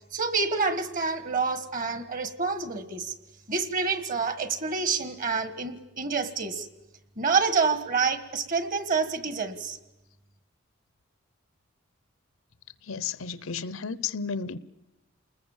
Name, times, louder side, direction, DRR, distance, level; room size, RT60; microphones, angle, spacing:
voice 1, 0.1-3.1 3.5-6.7 7.2-9.8, right 5 dB, 40° right, 1.5 m, -27 dB
voice 2, 12.8-14.6, left 6 dB, 80° left, 0.8 m, -33 dB
29.0 x 20.5 x 7.3 m
head